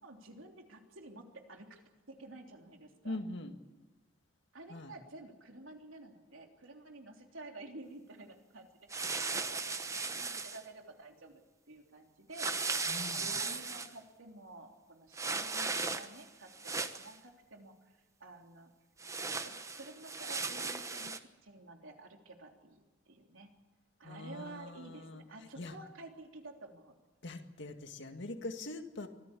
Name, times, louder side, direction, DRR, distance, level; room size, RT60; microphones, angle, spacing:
voice 1, 0.0-1.8 2.1-3.2 4.5-11.4 11.7-12.6 13.2-18.7 19.2-23.5 24.0-26.9, right 2 dB, 85° right, 3 dB, 3.3 m, -51 dB
voice 2, 3.0-3.5 4.7-4.9 12.9-13.3 24.0-25.2 25.6-25.8 27.2-29.1, left 2 dB, 65° left, 6 dB, 2.0 m, -42 dB
sound 1, 8.9-10.6 12.3-13.9 15.1-16.2 16.5-17.1 19.0-21.2, right 4 dB, 15° right, 1.1 m, -37 dB
24.5 x 15.0 x 8.6 m, 1.2 s
head